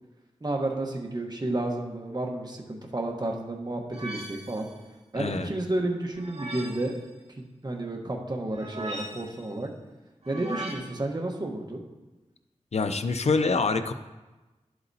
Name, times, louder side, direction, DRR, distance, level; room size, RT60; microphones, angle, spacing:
voice 1, 0.4-4.7 5.1-6.9 7.4-9.7 10.3-11.8, right 2 dB, 35° right, 1 dB, 1.2 m, -31 dB
sound 1, 3.9-4.7 6.1-6.9 8.5-9.4 10.2-10.7, right 1 dB, 60° right, 1.9 m, -38 dB
voice 2, 5.2-5.5 12.7-13.9, left 4 dB, 60° left, 10 dB, 0.5 m, -25 dB
11.0 x 7.9 x 2.7 m, 1.1 s
wide cardioid pair, 75°, 12 cm